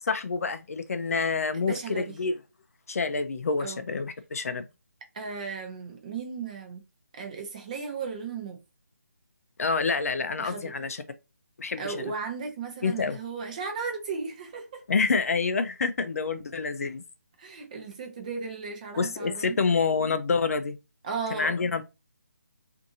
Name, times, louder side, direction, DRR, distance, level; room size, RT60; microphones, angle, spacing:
voice 1, 0.1-2.3 2.9-4.7 9.6-11.0 11.6-12.0 12.8-13.2 14.9-17.0 19.0-20.7 21.3-21.8, left 4 dB, 60° left, 0.4 m, -27 dB
voice 2, 1.5-2.2 3.6-3.8 5.1-6.8 7.1-8.6 10.4-10.7 11.8-14.8 17.4-19.6 21.0-21.6, right 5 dB, 25° right, 0.6 m, -35 dB
2.6 x 2.6 x 2.6 m
figure-of-eight pair, 165°, 9 cm